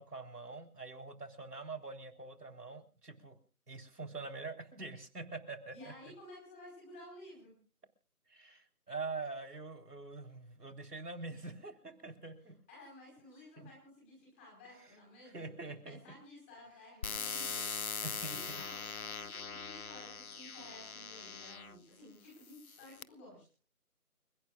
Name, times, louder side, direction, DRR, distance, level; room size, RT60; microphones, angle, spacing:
voice 1, 0.0-3.4 3.7-5.9 8.3-12.5 13.6-13.7 15.3-16.0 18.0-18.6, right 3 dB, 90° right, 5 dB, 4.0 m, -45 dB
voice 2, 5.7-7.5 12.7-17.6 17.9-23.4, left 1 dB, 10° left, -3 dB, 4.7 m, -54 dB
sound 1, 17.0-21.8 22.5-23.0, left 5 dB, 65° left, 1.0 m, -41 dB
29.5 x 16.5 x 2.5 m, 0.36 s
figure-of-eight pair, 175°, 46 cm